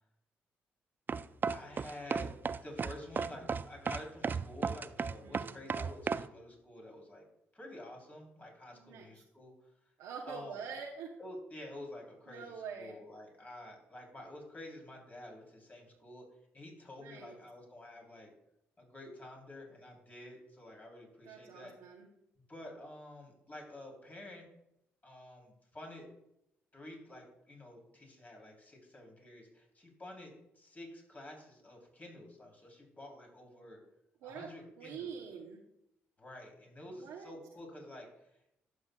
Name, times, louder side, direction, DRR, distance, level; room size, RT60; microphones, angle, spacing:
sound 1, 1.1-6.3, right 5 dB, 35° right, 0.3 m, -34 dB
voice 1, 1.5-2.3 2.6-7.2 7.5-9.7 10.3-10.6 11.2-12.4 12.8-16.3 16.5-18.3 18.8-21.7 22.5-24.5 25.0-26.0 26.7-33.8 34.2-35.1 36.2-38.3, left 1 dB, 30° left, 0 dB, 3.1 m, -49 dB
voice 2, 5.2-5.5 8.7-9.2 10.0-11.1 12.3-13.0 17.0-17.3 21.2-22.1 34.2-34.5 34.8-35.6 36.9-37.3, right 6 dB, 85° right, -1 dB, 0.7 m, -45 dB
12.0 x 6.2 x 2.2 m, 0.81 s
supercardioid pair, 55°, 5 cm